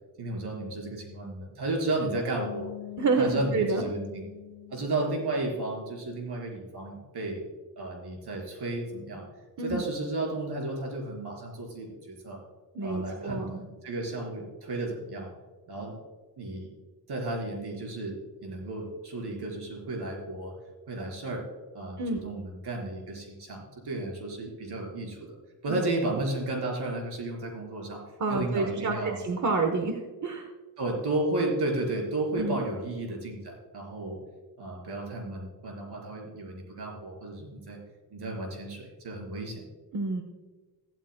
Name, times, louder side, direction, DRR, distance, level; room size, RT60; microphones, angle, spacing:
voice 1, 0.2-2.7 3.2-4.2 4.7-7.4 7.8-9.2 9.6-12.4 12.8-15.3 15.7-16.0 16.4-16.7 17.1-20.5 20.9-21.4 21.7-25.4 25.6-28.0 28.3-29.2 30.8-34.2 34.6-37.8 38.1-39.6, right 2 dB, 75° right, 0 dB, 4.1 m, -33 dB
Bass guitar, 2.4-6.1, left 16 dB, 90° left, 0.6 m, -44 dB
voice 2, 3.0-3.8 9.6-9.8 12.7-13.5 22.0-22.2 25.7-25.8 28.2-30.5 32.4-32.6 39.9-40.2, right 3 dB, 45° right, 5 dB, 1.1 m, -28 dB
15.0 x 12.5 x 2.2 m, 1.3 s
cardioid pair, 100°, 40 cm